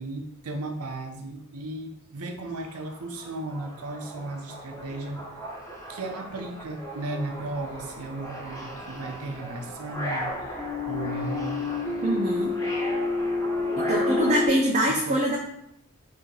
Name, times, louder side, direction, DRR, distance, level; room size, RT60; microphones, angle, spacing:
voice 1, 0.0-5.2 5.9-10.6 10.8-11.7 14.9-15.2, right 2 dB, 80° right, 4 dB, 0.6 m, -35 dB
sound 1, 2.5-2.6 3.0-14.5, left 2 dB, 15° left, 0.7 m, -31 dB
voice 2, 12.0-12.5 13.8-15.4, right 1 dB, 30° right, -1 dB, 0.5 m, -24 dB
4.3 x 2.7 x 3.8 m, 0.77 s
head